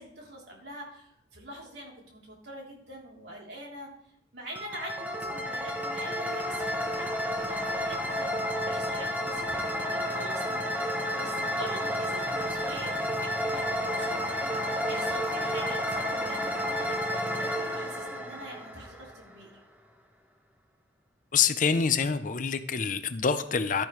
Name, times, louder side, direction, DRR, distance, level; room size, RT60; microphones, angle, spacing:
voice 1, 0.0-3.9 4.3-10.6 11.1-17.0 17.3-19.5, right 1 dB, 60° right, -2 dB, 3.2 m, -44 dB
sound 1, 4.5-19.3, equal, 10° right, 1.0 m, -31 dB
voice 2, 21.3-23.8, left 6 dB, 45° left, 11 dB, 0.5 m, -26 dB
12.0 x 10.5 x 3.1 m, 0.76 s
head